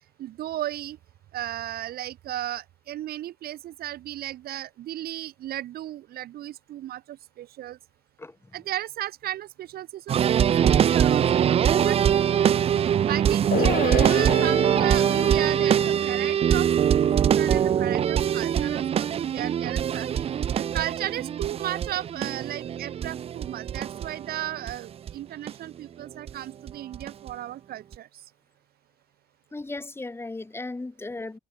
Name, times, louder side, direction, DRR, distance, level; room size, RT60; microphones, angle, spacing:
voice 1, 0.2-1.0 1.3-7.8 8.5-10.2 10.6-12.0 13.1-20.2 20.5-28.1, right 13 dB, 65° right, 1.4 m, -35 dB
sound 1, 10.1-24.7 25.1-25.2 25.5-25.6 26.3-26.4 26.7-27.3 27.9-28.0, right 9 dB, 35° right, 0.4 m, -23 dB
sound 2, 13.5-20.2 20.5-20.6, left 11 dB, 55° left, 3.3 m, -35 dB
voice 2, 29.5-31.4, left 2 dB, 15° left, 4.4 m, -36 dB
cardioid pair, 110°, 17 cm